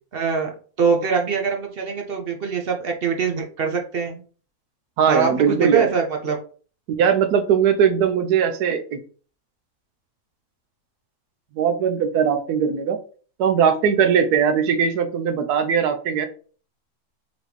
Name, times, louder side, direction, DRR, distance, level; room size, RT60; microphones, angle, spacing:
voice 1, 0.1-0.5 0.8-4.2 5.1-6.4, right 6 dB, 55° right, 2 dB, 0.6 m, -23 dB
voice 2, 5.0-5.9 7.0-9.0 11.5-13.0 13.4-16.3, right 7 dB, 90° right, 8 dB, 1.2 m, -20 dB
4.0 x 3.0 x 3.3 m, 0.40 s
omnidirectional pair, 1.6 m